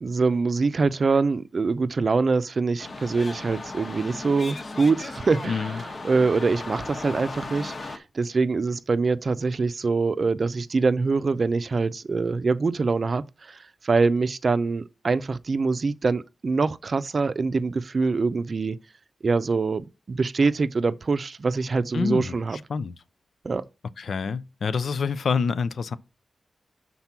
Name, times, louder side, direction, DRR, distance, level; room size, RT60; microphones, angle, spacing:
voice 1, 0.0-18.8 19.2-22.6 23.4-23.6, right 4 dB, 50° right, 0.5 m, -24 dB
sound 1, 2.8-8.0, left 3 dB, 50° left, 1.1 m, -37 dB
voice 2, 5.4-5.8 21.9-22.3 22.7-22.9 24.0-25.9, left 5 dB, 75° left, 0.5 m, -26 dB
5.9 x 4.0 x 5.8 m
cardioid pair, 80°, 0 cm